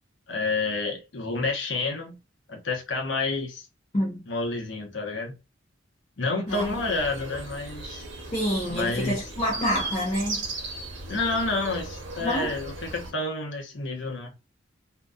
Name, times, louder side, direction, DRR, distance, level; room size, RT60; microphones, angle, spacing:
voice 1, 0.3-2.2 2.5-3.7 4.3-5.4 6.2-8.0 8.7-9.2 11.1-14.3, left 3 dB, 75° left, 0.8 m, -29 dB
voice 2, 3.9-4.3 6.5-6.6 8.3-10.4 12.2-12.6, equal, 30° left, 0.6 m, -27 dB
sound 1, 6.5-13.1, right 2 dB, 90° right, 0.8 m, -37 dB
2.6 x 2.2 x 2.2 m
head